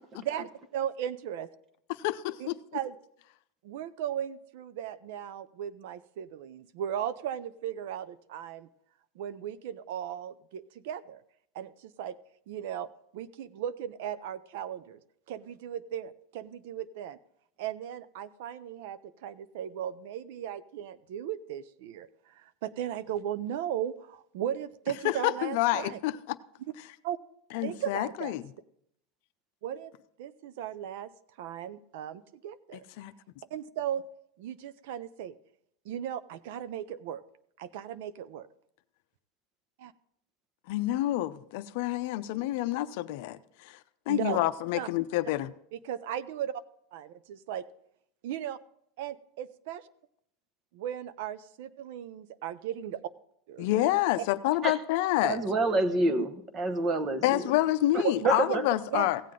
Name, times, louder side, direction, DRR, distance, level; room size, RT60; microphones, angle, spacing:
voice 1, 0.2-1.5 2.4-2.9 3.6-8.7 9.2-11.2 11.5-12.2 12.5-15.0 15.3-17.2 17.6-26.0 27.0-27.2 27.6-28.3 29.6-29.9 30.2-31.1 31.4-32.8 33.5-34.0 34.4-35.4 35.8-37.2 37.6-38.5 39.8-39.9 44.1-44.4 44.7-44.9 45.7-46.5 46.9-47.7 48.2-48.6 49.0-49.8 50.7-53.0 53.5-53.7 54.2-54.3 55.5-55.6 56.2-56.3 58.0-58.3 58.9-59.1, right 10 dB, 70° right, 0.5 m, -36 dB
voice 2, 1.9-2.6 25.0-26.4 27.5-28.4 33.0-33.1 40.7-43.8 44.1-45.5 53.6-55.4 57.2-59.2, left 15 dB, 65° left, 0.5 m, -28 dB
voice 3, 55.2-57.4 57.9-58.6, right 2 dB, 30° right, 1.0 m, -28 dB
16.0 x 7.5 x 3.8 m
supercardioid pair, 135°, 0 cm